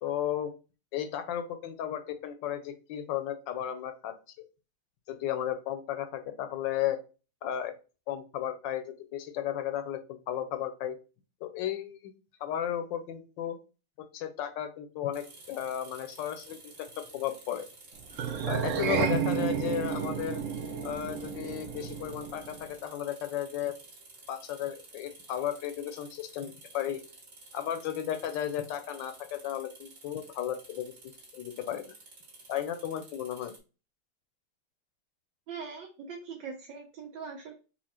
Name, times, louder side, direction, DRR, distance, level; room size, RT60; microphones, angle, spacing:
voice 1, 0.0-0.5 0.9-4.1 5.1-7.0 7.4-7.7 8.1-11.0 11.4-12.1 12.4-13.6 14.1-17.7 18.5-20.4 20.8-23.7 24.3-27.0 27.5-30.9 31.3-31.9 32.5-33.5, left 10 dB, 75° left, 8 dB, 1.2 m, -34 dB
sound 1, 15.1-33.6, right 3 dB, 45° right, 1.6 m, -53 dB
sound 2, 18.1-22.7, right 7 dB, 90° right, 0.6 m, -32 dB
voice 2, 35.5-37.5, right 5 dB, 70° right, 2 dB, 1.3 m, -41 dB
4.3 x 2.4 x 4.2 m, 0.33 s
omnidirectional pair, 2.1 m